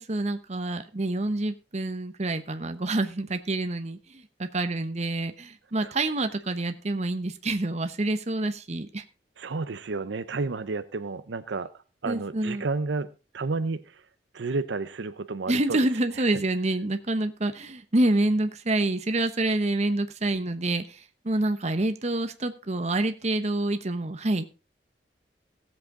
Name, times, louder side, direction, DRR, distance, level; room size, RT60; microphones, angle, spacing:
voice 1, 0.0-9.0 12.1-12.7 15.5-24.5, right 2 dB, 40° right, 8 dB, 1.0 m, -27 dB
voice 2, 9.4-11.7 12.0-13.1 13.3-14.0 14.3-15.8 16.3-16.4, right 3 dB, 80° right, 13 dB, 0.6 m, -31 dB
17.0 x 7.7 x 3.7 m, 0.31 s
head